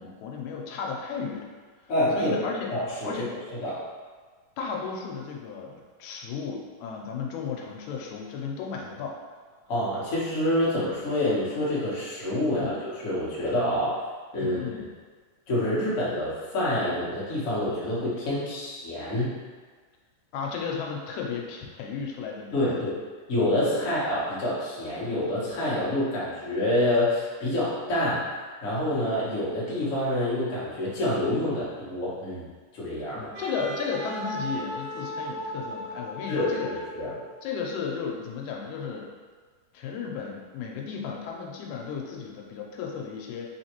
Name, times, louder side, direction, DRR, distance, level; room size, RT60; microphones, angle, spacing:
voice 1, 0.0-1.5 2.2-2.7 3.0-3.3 4.6-9.2 12.6-12.8 14.4-14.9 20.3-22.8 33.1-36.7 37.4-39.1 39.7-43.5, left 5 dB, 90° left, 0 dB, 2.0 m, -34 dB
voice 2, 1.9-2.4 2.7-3.2 3.6-3.8 9.7-14.0 14.3-14.6 15.5-19.3 22.5-23.0 23.3-28.2 28.6-32.5 32.7-33.3 36.2-37.1, left 1 dB, 60° left, -8 dB, 0.8 m, -27 dB
Wind instrument woodwind instrument, 33.3-37.4, equal, 75° right, 1.6 m, -36 dB
4.6 x 3.1 x 2.9 m, 1.5 s
omnidirectional pair, 3.3 m